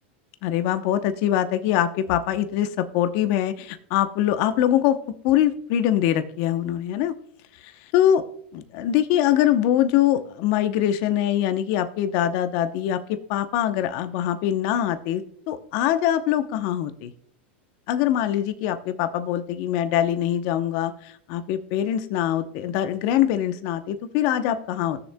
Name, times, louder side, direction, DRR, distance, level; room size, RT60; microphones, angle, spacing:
voice 1, 0.4-5.0 5.2-7.1 7.9-8.2 8.5-17.1 17.9-25.0, left 11 dB, 55° left, 10 dB, 0.8 m, -23 dB
18.0 x 6.7 x 2.2 m, 0.66 s
hypercardioid pair, 120°, 6 cm